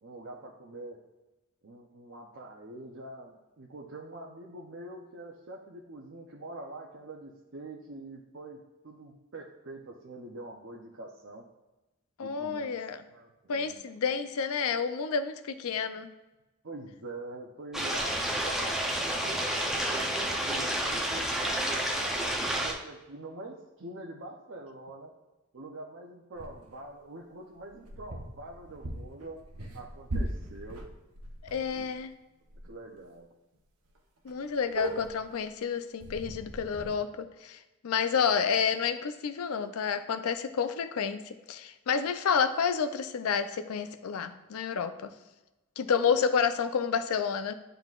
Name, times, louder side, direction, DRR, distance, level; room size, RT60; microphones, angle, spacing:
voice 1, 0.0-1.0 1.6-11.4 12.2-12.8 13.1-13.8 16.6-25.1 25.5-29.4 29.7-30.8 31.7-31.9 32.6-33.3 37.9-38.2 46.1-46.2, right 2 dB, 55° right, -1 dB, 0.6 m, -45 dB
voice 2, 12.2-13.0 13.5-16.1 31.4-32.1 34.2-37.6 37.8-45.1 45.8-47.5, left 6 dB, 75° left, 11 dB, 0.4 m, -30 dB
sound 1, 17.7-22.7, right 1 dB, ahead, 0.5 m, -30 dB
sound 2, 26.4-26.8 27.5-32.1 32.5-32.7 33.0-33.1 33.5-33.6 33.9-34.0 34.3-35.4 36.0-36.9, equal, 85° right, 0.9 m, -39 dB
10.5 x 3.9 x 2.4 m, 1.1 s
head